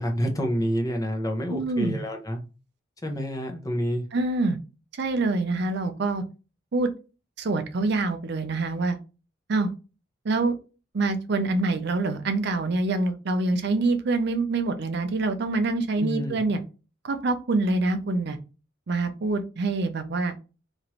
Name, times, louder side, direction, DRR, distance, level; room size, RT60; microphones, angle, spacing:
voice 1, 0.0-2.4 3.0-4.1 16.0-16.4, equal, 20° left, 3 dB, 0.6 m, -28 dB
voice 2, 1.5-2.0 4.1-4.6 5.0-6.2 6.7-6.9 7.4-9.0 9.5-9.7 10.2-10.6 10.9-16.6 17.0-18.4 18.9-20.4, right 3 dB, 55° right, 8 dB, 0.5 m, -25 dB
3.0 x 2.5 x 2.9 m, 0.32 s
head